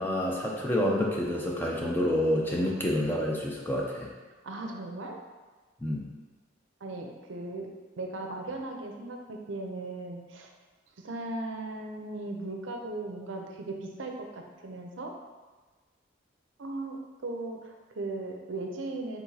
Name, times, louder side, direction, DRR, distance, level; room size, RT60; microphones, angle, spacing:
voice 1, 0.0-4.1 5.8-6.0, left 1 dB, 10° left, -2 dB, 0.4 m, -28 dB
voice 2, 4.4-5.2 6.8-7.7 8.0-10.5 11.0-15.1 16.6-19.2, right 2 dB, 70° right, 2 dB, 0.5 m, -37 dB
4.7 x 3.9 x 2.7 m, 1.3 s
head